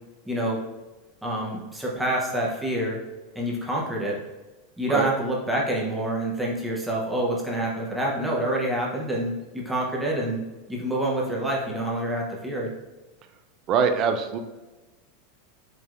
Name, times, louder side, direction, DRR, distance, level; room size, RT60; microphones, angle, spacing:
voice 1, 0.3-0.6 1.2-3.0 3.3-4.2 4.8-10.4 10.7-12.7, right 1 dB, 5° right, -4 dB, 0.7 m, -27 dB
voice 2, 13.7-14.4, right 6 dB, 30° right, 7 dB, 0.3 m, -23 dB
4.6 x 3.3 x 2.4 m, 1.1 s
supercardioid pair, 175°, 0 cm